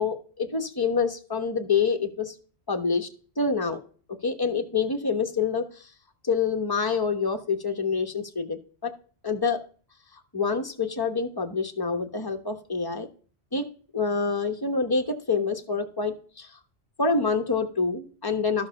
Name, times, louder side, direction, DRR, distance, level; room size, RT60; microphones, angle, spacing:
voice 1, 0.0-2.3 2.7-3.1 3.4-3.8 4.2-5.9 6.2-8.9 9.2-9.6 10.1-13.1 13.5-13.7 13.9-16.5 17.0-18.7, left 5 dB, 20° left, 5 dB, 1.2 m, -27 dB
13.0 x 4.9 x 6.5 m, 0.41 s
omnidirectional pair, 1.1 m